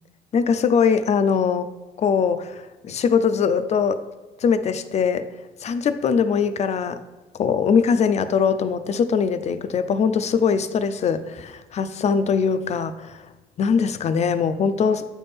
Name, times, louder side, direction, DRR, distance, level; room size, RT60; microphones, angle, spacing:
voice 1, 0.3-1.7 2.0-4.0 4.4-5.3 5.6-7.0 7.3-13.2 13.6-15.0, left 6 dB, 40° left, 12 dB, 0.5 m, -21 dB
8.5 x 3.5 x 4.2 m, 1.2 s
cardioid pair, 110°, 17 cm